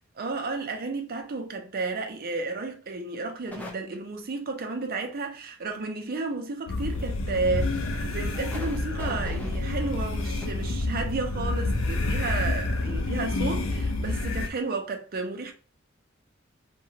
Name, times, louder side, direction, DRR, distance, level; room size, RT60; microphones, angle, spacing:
voice 1, 0.2-15.5, right 3 dB, 45° right, 0.5 m, -32 dB
sound 1, 3.5-3.7 6.8-7.1 7.6-7.7 8.2-10.5 12.3-12.4 12.7-12.9 13.3-13.4, left 2 dB, 10° left, 0.5 m, -43 dB
sound 2, 6.7-14.5, left 2 dB, 70° left, 0.5 m, -28 dB
2.8 x 2.2 x 2.7 m
head